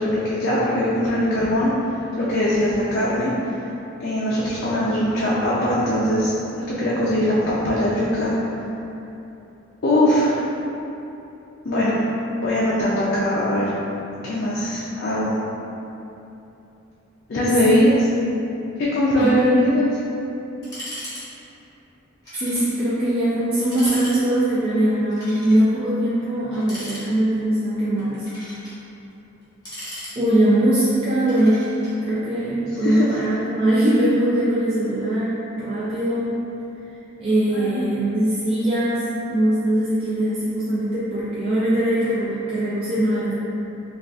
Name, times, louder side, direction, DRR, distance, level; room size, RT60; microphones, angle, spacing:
voice 1, 0.0-1.7 2.2-3.6 4.0-8.3 9.8-10.4 11.6-12.0 12.4-13.7 14.2-15.3 17.3-17.9 18.8-19.8 32.8-33.1 37.5-37.8, left 1 dB, 50° left, -8 dB, 0.4 m, -21 dB
voice 2, 19.2-19.7 22.4-28.3 30.2-31.6 32.0-36.4 37.2-43.4, right 1 dB, 30° right, -11 dB, 0.3 m, -21 dB
sound 1, 20.6-21.2 21.5-21.6 22.2-22.7 23.1-23.2 23.6-24.2 25.1-25.6 26.5-27.4 28.0-28.8 29.4-30.6 31.3-31.9, equal, 20° left, 1.1 m, -37 dB
3.5 x 2.3 x 2.4 m, 2.9 s
head